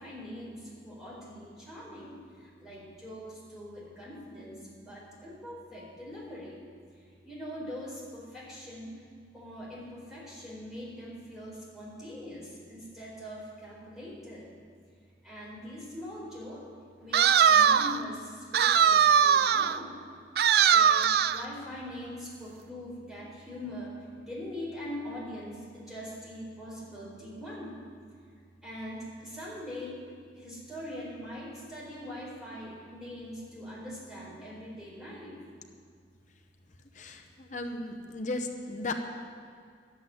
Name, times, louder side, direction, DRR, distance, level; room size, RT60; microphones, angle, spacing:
voice 1, 0.0-6.6 6.9-9.0 9.3-14.5 15.2-16.7 17.0-20.0 20.7-27.8 28.6-30.0 30.4-35.4 37.1-37.2 37.7-38.2, equal, ahead, -7 dB, 4.5 m, -42 dB
sound 1, 17.1-18.0 18.5-19.8 20.4-21.4, right 7 dB, 60° right, 0.3 m, -21 dB
voice 2, 36.9-38.9, left 2 dB, 45° left, 4 dB, 0.9 m, -35 dB
11.5 x 7.8 x 9.7 m, 2.1 s
head